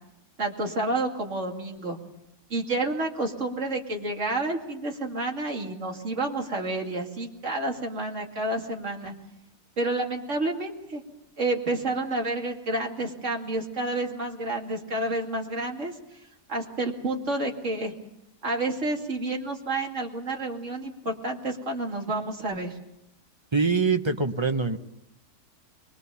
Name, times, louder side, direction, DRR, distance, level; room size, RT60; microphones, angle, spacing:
voice 1, 0.4-2.0 2.5-9.1 9.8-11.0 11.4-16.2 16.5-17.9 18.4-22.8, right 2 dB, 45° right, 1 dB, 2.9 m, -29 dB
voice 2, 23.5-24.8, right 4 dB, 25° right, 7 dB, 0.7 m, -24 dB
23.0 x 21.5 x 7.0 m, 0.87 s
omnidirectional pair, 1.8 m